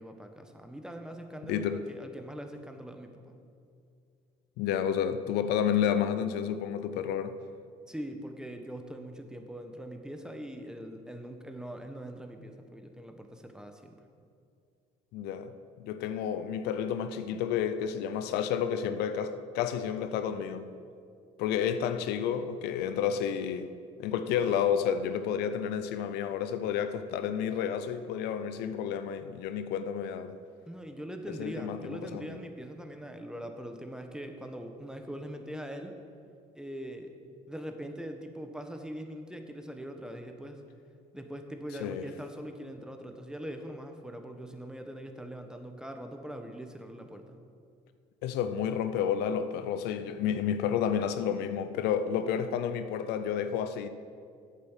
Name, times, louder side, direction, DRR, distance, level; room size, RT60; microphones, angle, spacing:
voice 1, 0.0-3.3 7.9-14.0 30.7-36.0 36.5-37.1 37.5-40.6 41.1-47.4, equal, 5° right, 1.2 m, -42 dB
voice 2, 1.4-1.8 4.6-7.3 15.1-15.5 15.8-20.7 21.4-23.7 24.0-30.4 31.3-32.4 41.8-42.0 48.2-53.9, left 8 dB, 80° left, 0.6 m, -30 dB
8.3 x 8.3 x 7.3 m
supercardioid pair, 85°, 17 cm